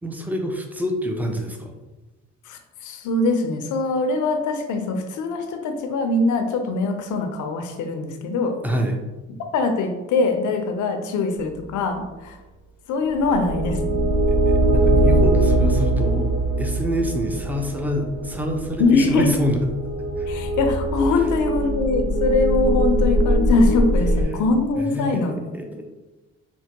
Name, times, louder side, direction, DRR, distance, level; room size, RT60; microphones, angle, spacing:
voice 1, 0.0-1.7 8.6-9.0 14.3-16.3 16.6-19.7 20.2-20.3 24.8-25.9, equal, 5° right, 2 dB, 0.5 m, -26 dB
voice 2, 2.5-8.6 9.5-12.4 12.9-14.1 18.8-19.3 20.3-25.4, left 3 dB, 75° left, 5 dB, 0.6 m, -22 dB
sound 1, 13.1-24.2, right 1 dB, 85° right, 1.0 m, -21 dB
4.4 x 2.2 x 2.9 m, 1.1 s
cardioid pair, 90°, 30 cm